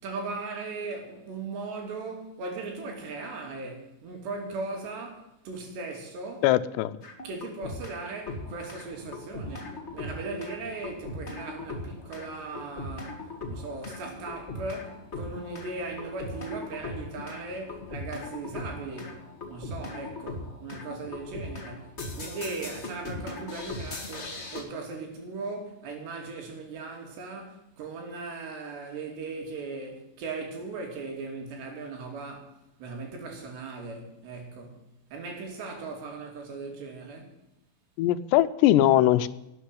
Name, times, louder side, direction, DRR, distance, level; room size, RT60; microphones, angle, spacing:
voice 1, 0.0-6.5 7.2-34.9 35.1-37.3, right 3 dB, 80° right, 5.1 m, -38 dB
voice 2, 6.4-7.0 38.0-39.3, left 13 dB, 90° left, 2.9 m, -21 dB
sound 1, 7.0-8.0 8.3-24.6, left 2 dB, 50° left, 0.7 m, -39 dB
12.5 x 9.0 x 9.9 m
omnidirectional pair, 4.8 m